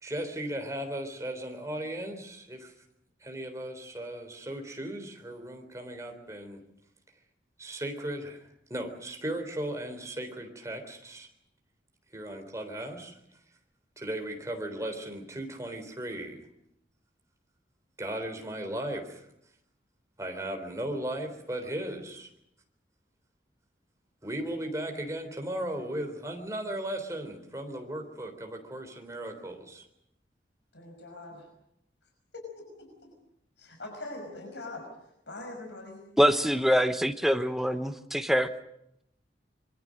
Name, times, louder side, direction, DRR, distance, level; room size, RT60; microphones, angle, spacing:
voice 1, 0.0-2.7 3.2-6.6 7.6-8.4 8.7-11.3 12.1-13.2 14.0-16.5 18.0-19.2 20.2-22.3 24.2-29.9, right 1 dB, 20° right, 4 dB, 3.7 m, -36 dB
voice 2, 30.7-31.5 32.3-33.1 33.6-34.9 35.3-36.0, left 2 dB, 80° left, 2 dB, 5.8 m, -42 dB
voice 3, 36.2-38.5, equal, ahead, 8 dB, 1.0 m, -24 dB
26.0 x 23.0 x 6.5 m, 0.78 s
head